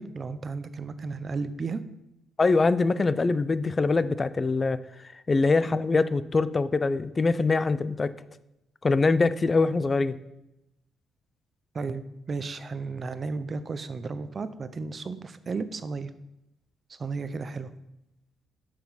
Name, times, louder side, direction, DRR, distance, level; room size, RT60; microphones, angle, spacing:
voice 1, 0.0-1.8 11.7-16.1 16.9-17.7, right 4 dB, 40° right, 12 dB, 0.6 m, -34 dB
voice 2, 2.4-4.8 5.3-8.1 8.8-10.2, left 3 dB, 30° left, 15 dB, 0.4 m, -23 dB
6.7 x 6.0 x 5.7 m, 0.89 s
cardioid pair, 90°, 0 cm